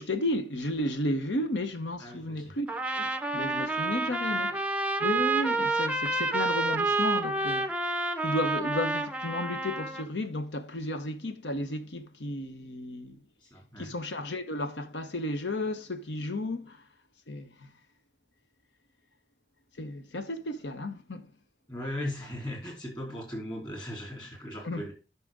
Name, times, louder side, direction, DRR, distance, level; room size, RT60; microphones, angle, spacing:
voice 1, 0.0-7.7 8.2-13.2 13.8-16.9 17.3-17.7 19.8-21.3 24.6-24.9, left 1 dB, 85° left, 1.0 m, -33 dB
voice 2, 2.0-2.5 13.4-14.0 21.7-24.9, left 1 dB, 25° left, 3.7 m, -38 dB
Trumpet, 2.7-10.1, right 3 dB, 5° right, 0.5 m, -29 dB
9.7 x 5.9 x 3.8 m
head